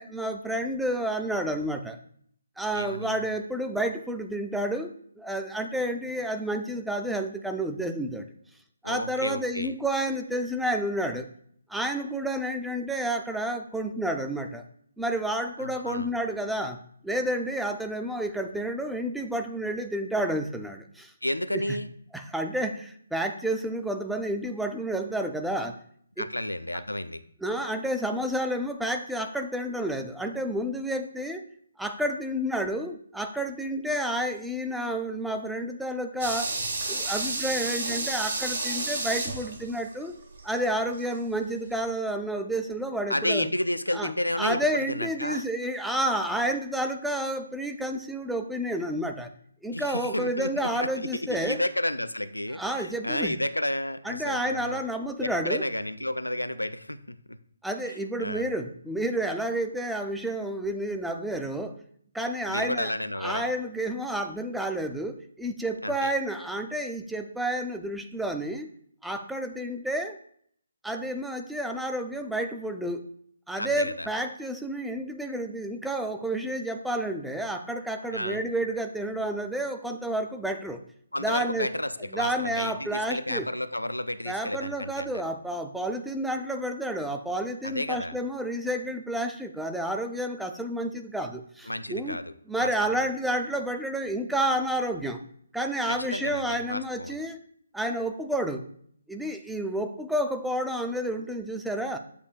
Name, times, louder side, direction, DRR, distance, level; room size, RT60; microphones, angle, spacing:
voice 1, 0.0-2.0 2.6-4.9 5.2-8.3 8.8-11.3 11.7-14.6 15.0-21.1 21.5-21.6 22.1-25.7 26.2-26.3 27.4-31.4 31.8-36.5 36.9-40.1 40.4-43.5 43.9-44.1 44.4-49.3 49.6-51.6 52.6-53.4 54.0-55.7 57.6-61.8 62.1-62.9 63.2-68.7 69.0-70.2 70.8-73.1 73.5-80.8 81.2-81.7 82.1-83.5 84.3-92.2 92.5-95.2 95.5-97.4 97.7-98.6 99.1-102.0, right 1 dB, ahead, 5 dB, 0.3 m, -30 dB
voice 2, 2.7-3.2 8.8-9.7 15.6-16.1 21.2-21.9 26.2-27.2 43.1-45.4 49.7-54.8 55.2-57.4 57.8-58.5 62.5-63.5 65.8-66.1 73.6-74.1 78.1-78.4 81.1-85.2 87.6-88.2 91.7-92.9 95.9-97.2, left 1 dB, 85° left, 13 dB, 0.3 m, -31 dB
sound 1, 36.2-41.2 41.5-41.6, right 3 dB, 50° right, 1.0 m, -31 dB
8.1 x 2.7 x 2.2 m, 0.64 s
figure-of-eight pair, 140°, 0 cm